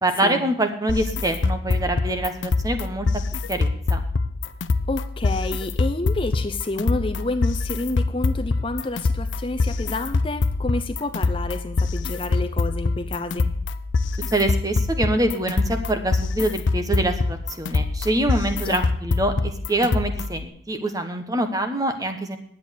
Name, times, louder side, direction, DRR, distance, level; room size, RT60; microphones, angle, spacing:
voice 1, 0.0-3.1 3.5-4.0 14.3-22.4, right 1 dB, 20° right, 7 dB, 1.1 m, -25 dB
sound 1, 0.9-20.5, left 3 dB, 75° left, 0.6 m, -25 dB
voice 2, 4.9-13.5 18.6-18.8, left 2 dB, 25° left, 7 dB, 0.6 m, -29 dB
10.5 x 8.5 x 6.5 m, 0.68 s
head